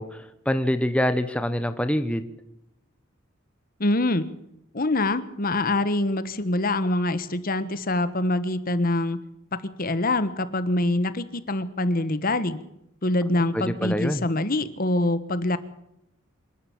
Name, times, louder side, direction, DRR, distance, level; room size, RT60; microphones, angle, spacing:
voice 1, 0.0-2.3 13.5-14.2, equal, 5° left, 10 dB, 0.9 m, -25 dB
voice 2, 3.8-4.2 4.7-9.2 9.5-12.6 13.0-15.6, left 2 dB, 45° left, 14 dB, 1.3 m, -25 dB
26.5 x 12.0 x 8.7 m, 0.81 s
head